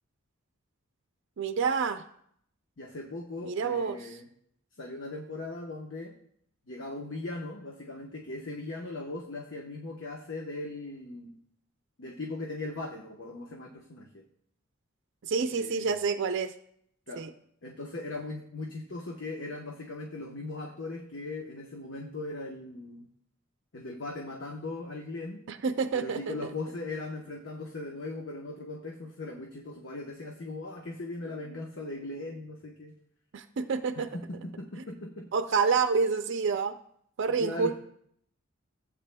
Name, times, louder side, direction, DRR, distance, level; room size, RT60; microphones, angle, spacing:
voice 1, 1.4-2.0 3.4-4.0 15.2-16.5 17.2-17.3 25.5-26.3 33.3-34.1 35.3-36.8 37.2-37.8, right 5 dB, 65° right, 8 dB, 0.4 m, -28 dB
voice 2, 2.8-4.2 4.8-6.1 6.7-11.4 12.0-14.2 15.5-16.0 17.1-17.3 17.6-23.1 23.7-25.4 25.9-33.0 34.0-35.3 37.3-37.8, left 2 dB, 65° left, 1 dB, 0.9 m, -39 dB
15.5 x 8.3 x 2.2 m, 0.69 s
head